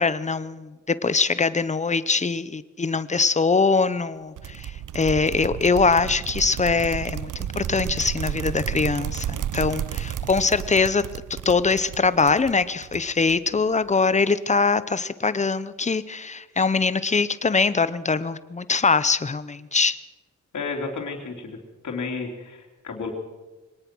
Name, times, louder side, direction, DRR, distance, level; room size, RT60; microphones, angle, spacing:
voice 1, 0.0-11.0 11.3-20.0, left 4 dB, 25° left, 15 dB, 0.7 m, -23 dB
sound 1, 4.4-13.6, right 10 dB, 85° right, 0.7 m, -32 dB
voice 2, 20.5-21.6 21.8-23.1, left 4 dB, 70° left, 1 dB, 3.5 m, -32 dB
23.5 x 18.5 x 6.2 m, 1.2 s
wide cardioid pair, 160°, 30 cm